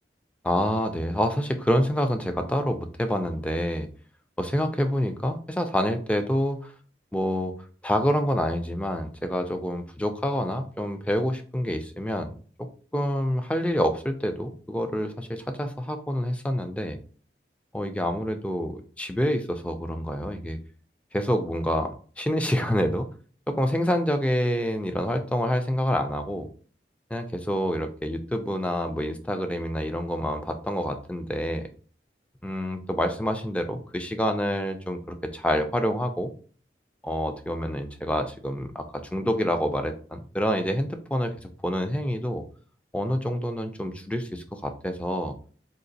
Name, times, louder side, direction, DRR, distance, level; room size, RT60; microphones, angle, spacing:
voice 1, 0.4-3.9 4.4-6.7 7.1-7.6 7.8-12.3 12.6-17.0 17.7-20.6 21.1-23.1 23.5-26.5 27.1-31.7 32.4-36.3 37.0-42.4 42.9-45.4, equal, 5° left, 7 dB, 0.3 m, -27 dB
3.9 x 2.5 x 2.6 m, 0.42 s
head